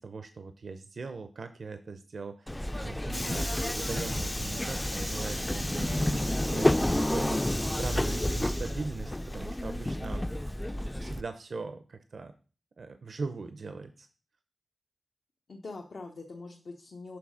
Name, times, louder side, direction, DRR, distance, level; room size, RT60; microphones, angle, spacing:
voice 1, 0.0-6.2 6.5-6.7 7.1-7.4 7.8-10.3 11.0-12.3 12.8-14.1, right 4 dB, 70° right, 9 dB, 0.5 m, -40 dB
Subway metro underground, 2.5-11.2, left 1 dB, 15° left, 0.3 m, -30 dB
voice 2, 4.4-5.1 15.5-17.2, left 3 dB, 70° left, 1 dB, 0.9 m, -44 dB
6.0 x 3.9 x 6.2 m, 0.38 s
wide cardioid pair, 80°, 0 cm